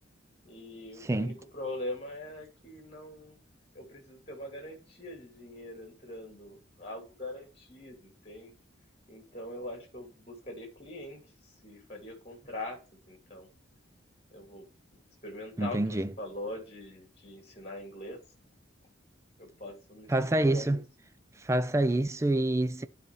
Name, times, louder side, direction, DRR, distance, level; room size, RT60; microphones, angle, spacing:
voice 1, 0.4-3.4 3.7-8.5 9.1-13.5 14.3-18.2 19.4-20.1 20.3-20.8, left 1 dB, 30° left, 2.3 m, -43 dB
voice 2, 1.0-1.4 15.6-16.1 20.1-20.8 21.4-22.9, right 1 dB, 15° right, 0.4 m, -27 dB
12.5 x 4.2 x 3.1 m
head